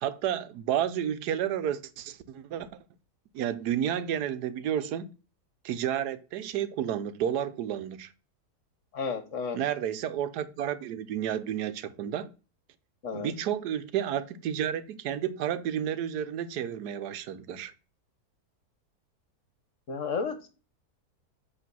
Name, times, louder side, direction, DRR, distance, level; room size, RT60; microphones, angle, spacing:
voice 1, 0.0-2.7 3.3-5.1 5.6-8.1 9.5-12.3 13.1-17.7, right 10 dB, 85° right, 1.2 m, -31 dB
voice 2, 8.9-9.6 13.0-13.3 19.9-20.5, left 5 dB, 55° left, 1.3 m, -32 dB
8.2 x 3.2 x 6.1 m
omnidirectional pair, 1.7 m